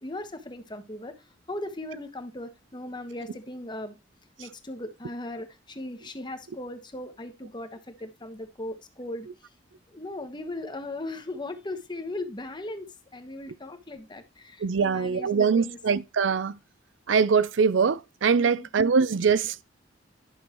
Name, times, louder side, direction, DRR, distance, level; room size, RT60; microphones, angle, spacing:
voice 1, 0.0-4.0 4.4-9.3 9.9-15.8 18.3-18.7, left 1 dB, 25° left, 1.2 m, -38 dB
voice 2, 14.6-16.5 17.1-19.6, right 5 dB, 80° right, 0.5 m, -23 dB
11.0 x 6.4 x 3.0 m
head